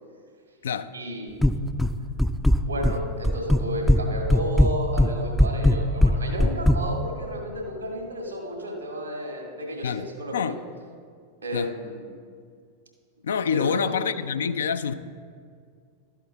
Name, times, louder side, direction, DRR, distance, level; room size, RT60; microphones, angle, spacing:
voice 1, 0.9-1.6 2.6-10.6 11.4-12.1 13.5-14.1, equal, 80° right, 1 dB, 1.9 m, -32 dB
sound 1, 1.4-1.9 2.2-3.0 3.2-4.0 4.3-6.8, left 1 dB, 5° left, 0.4 m, -19 dB
voice 2, 13.2-14.9, left 7 dB, 65° left, 12 dB, 0.4 m, -26 dB
12.5 x 8.1 x 3.6 m, 2.2 s
figure-of-eight pair, 90°, 0 cm